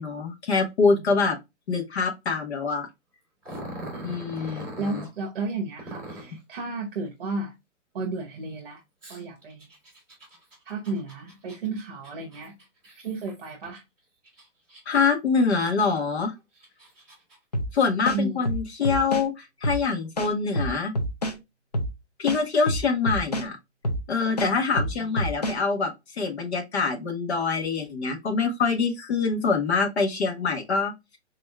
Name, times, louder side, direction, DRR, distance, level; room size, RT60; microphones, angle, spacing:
voice 1, 0.0-1.4 1.7-2.9 4.0-5.0 14.8-16.3 17.7-20.9 22.2-23.6 24.1-30.9, left 4 dB, 60° left, 1.4 m, -25 dB
Growling, 3.4-5.1 5.8-6.4 9.0-13.8 14.2-15.1 15.6-15.7 16.3-17.4, right 1 dB, 5° left, 2.1 m, -42 dB
voice 2, 3.9-7.5 7.9-8.8 9.1-9.7 10.6-12.6 13.0-13.8 18.1-18.5 24.3-24.6, right 3 dB, 45° right, 1.0 m, -33 dB
sound 1, 17.5-17.7 18.0-19.3 19.6-19.8 20.2-21.4 21.7-21.9 22.3-23.5 23.8-24.0 24.4-25.6, equal, 35° left, 0.4 m, -27 dB
4.1 x 3.6 x 2.3 m
hypercardioid pair, 180°, 37 cm